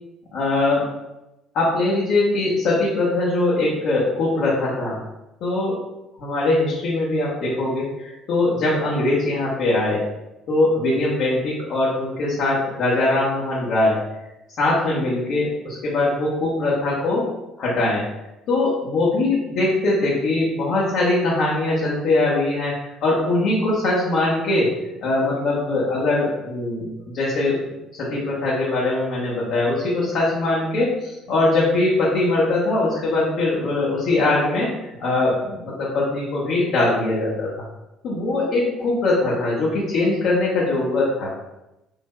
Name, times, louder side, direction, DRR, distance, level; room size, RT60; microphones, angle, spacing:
voice 1, 0.3-0.9 1.5-5.0 5.4-5.8 6.2-10.1 10.5-14.0 14.6-17.2 17.6-18.0 18.5-22.7 23.0-24.7 25.0-27.6 28.0-34.7 35.0-37.5 38.0-41.3, left 2 dB, 55° left, -7 dB, 1.1 m, -21 dB
6.4 x 2.7 x 2.3 m, 0.93 s
figure-of-eight pair, 55°, 0 cm